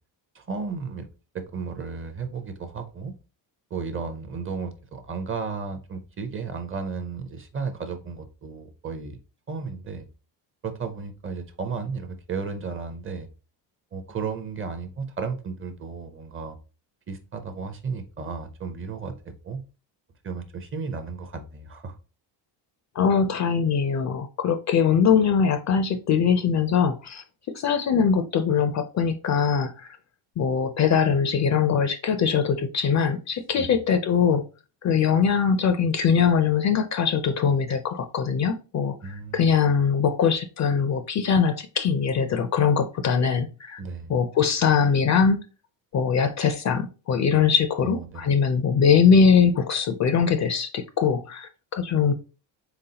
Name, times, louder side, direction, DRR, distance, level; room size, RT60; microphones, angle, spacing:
voice 1, 0.3-1.1 1.3-3.1 3.7-9.2 9.5-10.1 10.6-13.3 13.9-16.6 17.1-19.6 20.2-22.0 33.6-33.7 39.0-39.5 43.8-44.2 47.8-48.3, right 5 dB, 30° right, 7 dB, 0.5 m, -34 dB
voice 2, 23.0-30.0 30.4-34.4 34.8-43.8 44.1-45.4 45.9-52.1, left 6 dB, 40° left, 10 dB, 0.4 m, -22 dB
4.0 x 3.5 x 2.8 m, 0.33 s
cardioid pair, 115°, 46 cm